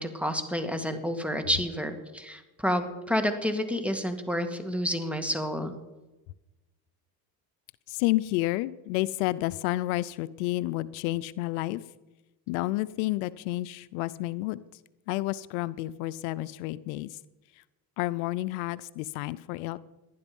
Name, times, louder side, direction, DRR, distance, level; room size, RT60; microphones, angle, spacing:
voice 1, 0.0-5.7, equal, 5° right, 7 dB, 2.2 m, -29 dB
voice 2, 7.9-11.8 12.5-14.8 15.1-17.2 17.6-17.7 18.0-19.8, left 18 dB, 85° left, 17 dB, 0.7 m, -30 dB
18.5 x 11.5 x 5.4 m, 1.1 s
supercardioid pair, 90°, 49 cm